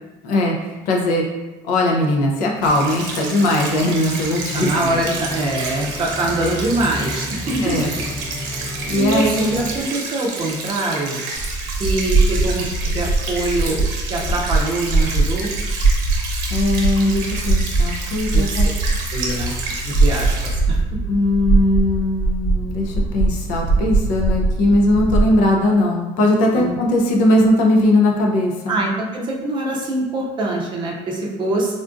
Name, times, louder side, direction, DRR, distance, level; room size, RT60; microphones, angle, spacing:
voice 1, 0.2-1.2 1.6-5.0 7.6-7.9 8.9-9.4 16.5-18.7 21.1-28.8, left 1 dB, 70° left, 0 dB, 0.5 m, -19 dB
sound 1, 2.5-9.8, left 1 dB, 50° left, 1.0 m, -33 dB
sound 2, 2.6-20.5, right 3 dB, 75° right, 0.7 m, -30 dB
voice 2, 4.5-7.8 8.5-8.7 8.9-11.2 11.8-13.8 14.1-15.5 18.3-18.7 19.1-19.6 19.8-20.8 26.5-26.8 28.7-31.8, right 2 dB, 35° right, -1 dB, 0.5 m, -24 dB
sound 3, 11.3-25.4, right 3 dB, 25° left, 0.8 m, -21 dB
3.6 x 2.4 x 2.5 m, 1.1 s
cardioid pair, 145°, 14 cm